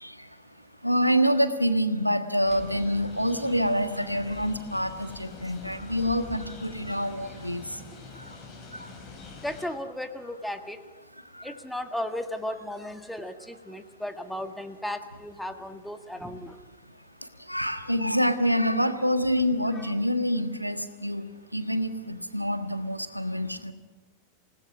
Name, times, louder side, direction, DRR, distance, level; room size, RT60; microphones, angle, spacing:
voice 1, 0.0-7.8 8.1-8.4 8.7-9.0 11.2-11.6 17.2-23.7, equal, 90° right, 10 dB, 1.5 m, -27 dB
sound 1, 2.4-9.7, left 3 dB, 30° left, 6.9 m, -45 dB
voice 2, 9.4-10.8 11.4-16.6 19.7-19.9, left 1 dB, 5° left, 7 dB, 1.6 m, -35 dB
28.5 x 18.0 x 6.2 m, 1.2 s
figure-of-eight pair, 90°, 0 cm